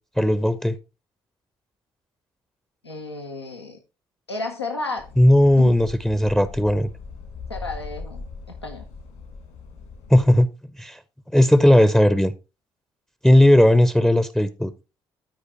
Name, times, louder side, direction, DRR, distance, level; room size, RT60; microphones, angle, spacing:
voice 1, 0.2-0.7 5.2-6.9 10.1-10.5 10.8-11.0 11.3-12.3 13.2-14.7, left 1 dB, 5° left, 0.6 m, -16 dB
voice 2, 2.8-3.8 4.3-5.1 5.6-5.8 7.5-8.8, left 3 dB, 90° left, 0.7 m, -32 dB
sound 1, 5.0-10.4, left 4 dB, 65° left, 2.1 m, -39 dB
13.0 x 4.9 x 3.0 m
figure-of-eight pair, 45°, 13 cm